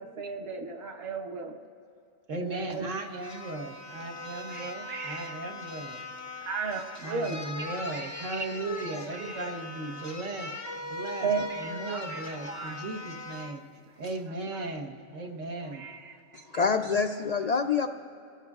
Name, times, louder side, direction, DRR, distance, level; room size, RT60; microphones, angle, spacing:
voice 1, 0.0-1.5 2.3-2.9 4.5-5.4 6.4-9.5 11.2-12.8 14.5-14.8 15.5-16.8, right 4 dB, 55° right, 4 dB, 1.2 m, -36 dB
voice 2, 2.3-6.0 6.3-6.4 7.0-10.5 10.9-11.3 11.6-13.6 14.0-15.9, right 2 dB, 80° right, 3 dB, 1.5 m, -37 dB
sound 1, 2.7-2.8 3.2-13.6 14.0-14.2, left 2 dB, 20° left, 0.5 m, -40 dB
voice 3, 16.3-17.9, left 5 dB, 85° left, 5 dB, 0.3 m, -26 dB
28.0 x 17.5 x 2.4 m, 2.6 s
omnidirectional pair, 1.3 m